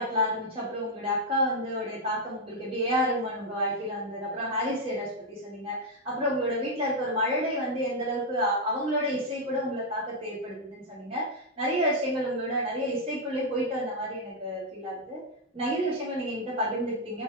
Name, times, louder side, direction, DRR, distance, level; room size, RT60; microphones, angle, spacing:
voice 1, 0.0-11.3 11.6-15.2 15.5-17.2, equal, 25° right, -7 dB, 1.4 m, -29 dB
4.4 x 2.6 x 3.4 m, 0.65 s
head